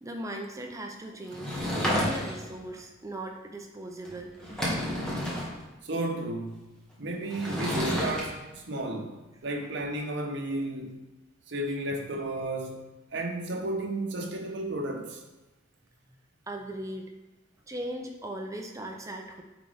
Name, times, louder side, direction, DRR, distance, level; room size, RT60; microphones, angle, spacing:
voice 1, 0.0-4.4 16.5-17.1 17.7-19.4, right 1 dB, 15° right, 2 dB, 0.5 m, -38 dB
Sliding door / Wood, 1.3-2.5 4.0-4.1 4.4-5.5 7.3-8.2, equal, 5° left, 1.2 m, -30 dB
voice 2, 5.8-6.7 7.0-10.9 11.5-12.8 13.1-15.2, right 1 dB, 60° right, 2 dB, 0.9 m, -33 dB
8.9 x 4.0 x 3.5 m, 1.0 s
head